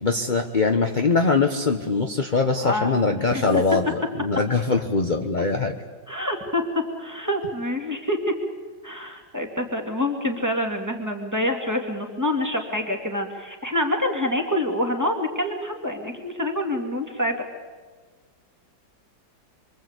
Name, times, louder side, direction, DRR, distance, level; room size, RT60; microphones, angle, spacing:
voice 1, 0.0-5.7, left 4 dB, 30° left, 4 dB, 1.1 m, -22 dB
voice 2, 2.6-2.9 3.5-3.6 6.1-6.6 7.0-8.3 8.8-17.3, left 1 dB, 10° right, 2 dB, 2.5 m, -26 dB
26.0 x 24.5 x 8.4 m, 1.5 s
omnidirectional pair, 2.2 m